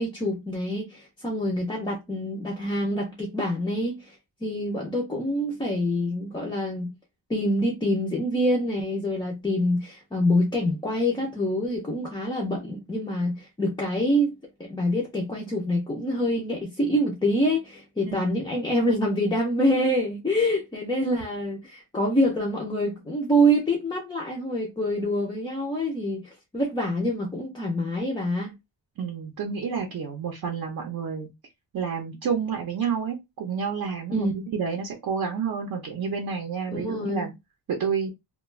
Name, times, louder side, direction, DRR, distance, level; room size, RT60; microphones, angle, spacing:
voice 1, 0.0-4.2 4.4-6.9 7.3-28.5 34.1-34.4 36.7-37.3, equal, 10° left, 0.3 m, -26 dB
voice 2, 29.0-31.3 31.7-37.3 37.7-38.1, right 6 dB, 50° right, 0.5 m, -29 dB
2.3 x 2.2 x 3.1 m
wide cardioid pair, 165°, 44 cm